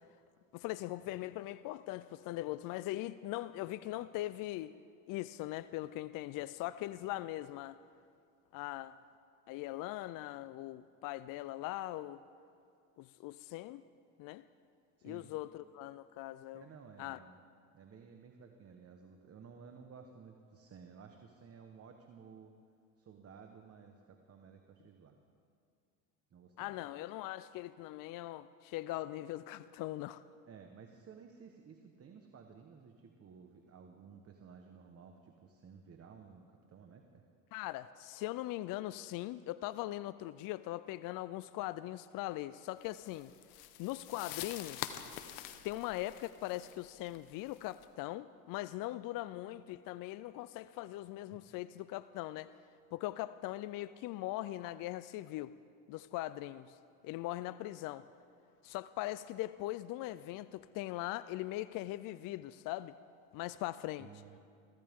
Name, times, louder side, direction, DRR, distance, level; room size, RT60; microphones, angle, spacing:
voice 1, 0.5-4.7 5.1-7.8 8.5-8.9 9.5-12.2 13.0-13.8 14.2-14.4 15.0-16.7 17.0-17.2 26.6-30.2 37.5-43.3 43.8-45.0 45.6-52.5 52.9-55.5 55.9-56.8 57.0-58.1 58.6-62.9 63.3-64.1, left 16 dB, 50° left, 15 dB, 0.5 m, -40 dB
voice 2, 16.5-17.4 17.7-22.5 23.0-25.2 26.3-26.8 30.5-37.3 51.3-51.4 64.0-64.4, right 6 dB, 35° right, 4 dB, 1.2 m, -55 dB
sound 1, 42.9-47.8, left 12 dB, 70° left, 1.1 m, -46 dB
23.0 x 15.5 x 3.7 m, 2.3 s
supercardioid pair, 95°, 43 cm